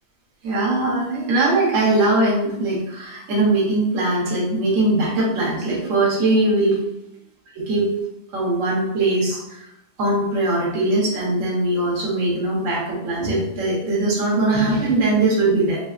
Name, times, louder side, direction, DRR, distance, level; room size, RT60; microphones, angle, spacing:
voice 1, 0.4-6.8 7.5-7.9 8.3-9.7 10.0-15.8, right 2 dB, 55° right, -5 dB, 1.2 m, -21 dB
4.1 x 2.0 x 2.4 m, 0.85 s
omnidirectional pair, 1.7 m